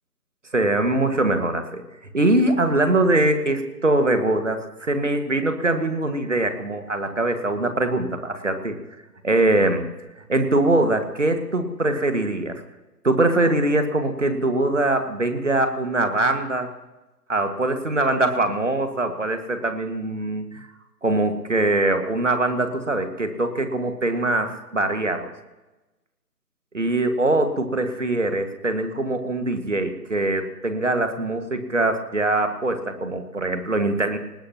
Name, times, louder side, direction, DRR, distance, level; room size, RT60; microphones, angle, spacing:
voice 1, 0.5-1.8 2.1-8.8 9.2-9.8 10.3-12.5 13.0-16.7 17.3-20.7 21.0-25.3 26.7-34.2, right 2 dB, 50° right, 7 dB, 2.0 m, -22 dB
22.0 x 19.5 x 3.0 m, 1.1 s
figure-of-eight pair, 165°, 48 cm